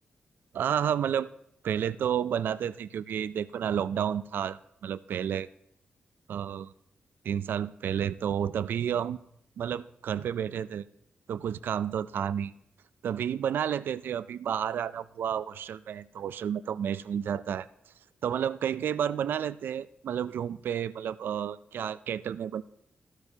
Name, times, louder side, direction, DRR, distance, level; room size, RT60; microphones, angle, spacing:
voice 1, 0.5-1.3 1.6-5.5 6.3-6.7 7.2-9.2 9.6-10.8 11.3-12.5 13.0-17.7 18.2-22.6, right 9 dB, 75° right, 17 dB, 0.4 m, -31 dB
14.0 x 12.5 x 2.8 m, 0.75 s
wide cardioid pair, 140°, 4 cm